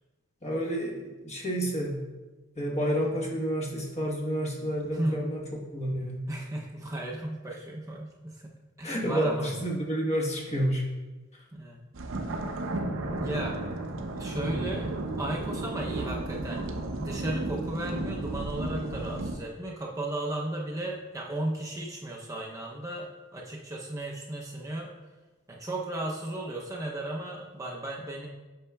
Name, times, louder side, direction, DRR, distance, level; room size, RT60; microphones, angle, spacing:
voice 1, 0.4-2.0 2.6-6.3 8.8-10.9, equal, 30° left, -2 dB, 1.1 m, -30 dB
voice 2, 4.9-5.2 6.3-8.5 8.8-9.5 11.5-11.8 13.2-13.6 14.2-14.9 15.2-24.9 25.5-28.3, right 1 dB, 15° right, -2 dB, 0.6 m, -35 dB
sound 1, 11.9-19.4, right 2 dB, 65° right, 0.7 m, -33 dB
8.3 x 5.4 x 2.3 m, 1.2 s
head